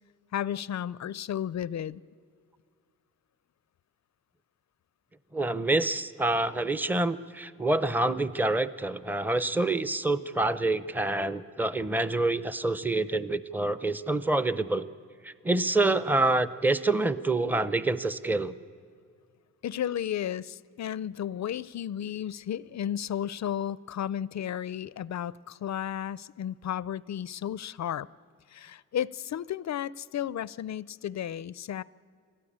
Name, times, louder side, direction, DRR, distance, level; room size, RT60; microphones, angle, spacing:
voice 1, 0.3-2.0 19.6-28.1 28.5-31.8, left 10 dB, 55° left, 19 dB, 0.5 m, -33 dB
voice 2, 5.3-14.9 15.2-18.5, right 2 dB, 5° right, 14 dB, 0.6 m, -27 dB
24.0 x 18.0 x 8.6 m, 2.2 s
cardioid pair, 90°, 33 cm